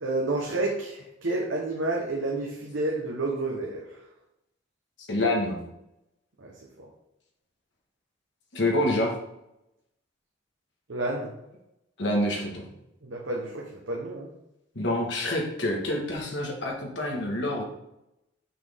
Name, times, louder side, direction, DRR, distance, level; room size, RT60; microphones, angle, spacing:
voice 1, 0.0-3.8 6.4-6.5 6.8-6.9 10.9-11.3 13.0-14.3, right 2 dB, 85° right, -2 dB, 1.1 m, -30 dB
voice 2, 5.1-5.6 8.5-9.2 12.0-12.7 14.7-17.6, left 1 dB, 65° left, 0 dB, 1.6 m, -27 dB
6.2 x 5.8 x 3.6 m, 0.85 s
head